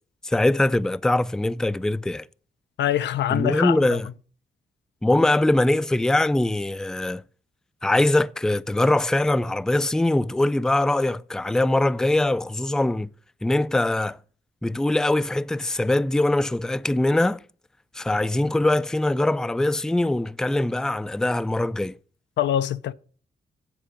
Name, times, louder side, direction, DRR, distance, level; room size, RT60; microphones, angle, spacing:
voice 1, 0.2-2.3 3.3-4.1 5.0-7.2 7.8-13.1 13.4-14.2 14.6-17.4 17.9-22.0, left 1 dB, 5° left, 0.3 m, -22 dB
voice 2, 2.8-4.0 22.4-22.9, left 11 dB, 85° left, 0.5 m, -24 dB
7.5 x 7.5 x 5.1 m
cardioid pair, 60°, 18 cm